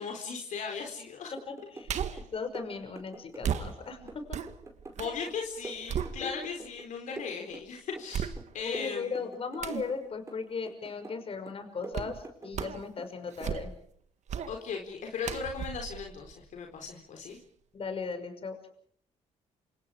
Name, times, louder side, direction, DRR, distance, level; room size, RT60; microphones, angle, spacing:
voice 1, 0.0-1.3 2.1-2.2 5.0-9.3 14.5-17.4, left 5 dB, 70° left, 2 dB, 4.0 m, -37 dB
sound 1, 1.4-3.8 4.1-6.9 7.2-8.1 8.4-10.0 10.3-11.2 11.5-13.1 13.4-13.6, right 2 dB, 20° right, 5.1 m, -46 dB
voice 2, 1.5-4.4 6.2-6.5 8.6-13.7 17.7-18.6, left 5 dB, 45° left, 7 dB, 5.9 m, -37 dB
sound 2, 1.9-2.3 3.4-5.2 5.6-6.7 7.2-7.3 8.1-8.8 9.6-9.9 11.9-12.2 12.5-12.9 13.3-13.9 14.3-14.6 15.2-16.9 17.3-17.4, right 8 dB, 65° right, 1.7 m, -36 dB
28.5 x 27.0 x 5.0 m, 0.63 s
cardioid pair, 95°, 13 cm